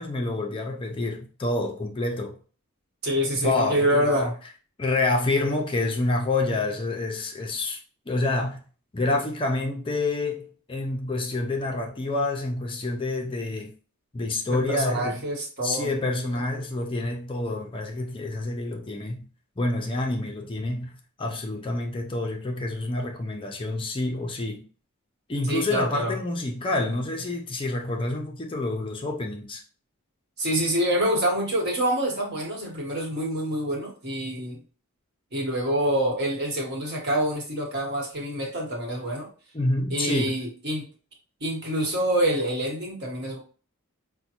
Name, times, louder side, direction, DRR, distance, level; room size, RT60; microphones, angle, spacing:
voice 1, 0.0-2.4 3.4-4.3 4.8-7.8 8.1-8.6 8.9-13.7 14.1-15.2 15.6-19.3 19.6-24.6 25.3-29.6 39.5-40.4, left 2 dB, 25° left, 0.4 m, -28 dB
voice 2, 3.0-4.3 14.5-16.4 25.5-26.1 30.4-34.6 35.3-39.3 39.9-40.9 41.4-43.4, right 1 dB, 50° right, 1.1 m, -26 dB
5.0 x 2.1 x 2.9 m
head